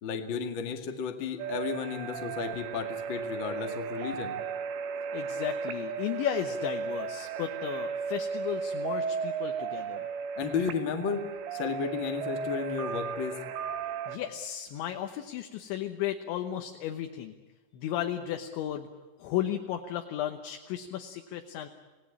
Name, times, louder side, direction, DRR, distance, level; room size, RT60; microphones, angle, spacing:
voice 1, 0.0-4.4 10.4-13.4, left 6 dB, 50° left, 4 dB, 1.5 m, -33 dB
sound 1, 1.4-14.2, right 6 dB, 70° right, 3.5 m, -35 dB
voice 2, 5.1-10.1 14.1-17.4 17.7-18.9 19.2-21.7, left 11 dB, 75° left, 5 dB, 3.3 m, -34 dB
27.0 x 19.0 x 8.7 m, 1.3 s
omnidirectional pair, 5.6 m